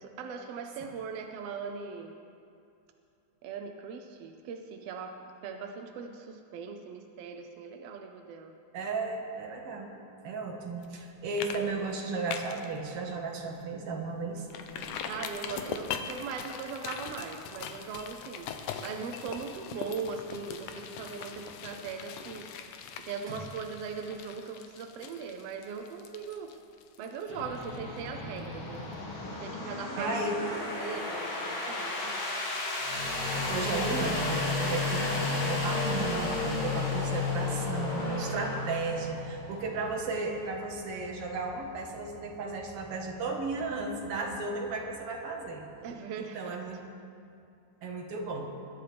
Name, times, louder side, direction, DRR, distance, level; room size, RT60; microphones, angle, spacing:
voice 1, 0.0-2.2 3.4-8.6 15.0-22.5 23.0-26.6 27.0-28.9 29.4-30.1 30.5-32.3 36.8-37.1 45.8-46.6, right 5 dB, 80° right, 4 dB, 1.4 m, -40 dB
voice 2, 8.7-9.9 10.2-14.4 23.3-23.4 30.0-30.4 33.3-45.6 46.2-46.8 47.8-48.5, right 3 dB, 55° right, 1 dB, 2.0 m, -34 dB
sound 1, 10.8-11.1 11.4-11.6 11.9-12.7 13.1-13.2 13.6-13.7 14.5-28.1 28.4-28.5, left 7 dB, 80° left, 2.2 m, -41 dB
sound 2, 27.3-45.9, left 2 dB, 50° left, 2.6 m, -38 dB
sound 3, 32.8-40.2, left 4 dB, 25° left, 2.3 m, -33 dB
21.5 x 11.0 x 3.4 m, 2.5 s
omnidirectional pair, 3.6 m